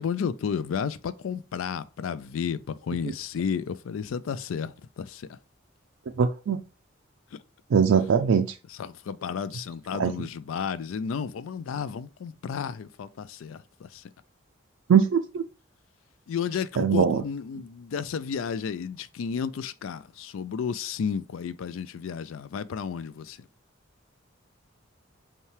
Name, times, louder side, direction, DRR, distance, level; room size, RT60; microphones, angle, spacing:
voice 1, 0.0-5.4 7.3-7.4 8.8-14.0 16.3-23.4, left 6 dB, 85° left, 0.4 m, -32 dB
voice 2, 6.2-6.6 7.7-8.5 10.0-10.1 14.9-15.4 16.8-17.2, right 6 dB, 75° right, 0.4 m, -21 dB
5.5 x 2.3 x 3.2 m
head